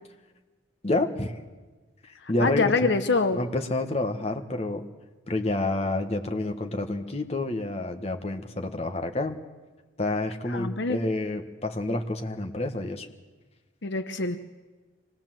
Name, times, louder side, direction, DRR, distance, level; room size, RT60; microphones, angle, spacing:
voice 1, 0.8-1.4 2.3-2.9 3.3-4.8 5.3-9.4 10.0-13.1, left 2 dB, 30° left, 4 dB, 1.4 m, -28 dB
voice 2, 2.2-3.4 10.5-11.0 13.8-14.4, left 3 dB, 60° left, 9 dB, 0.9 m, -25 dB
25.0 x 19.5 x 7.6 m, 1.3 s
head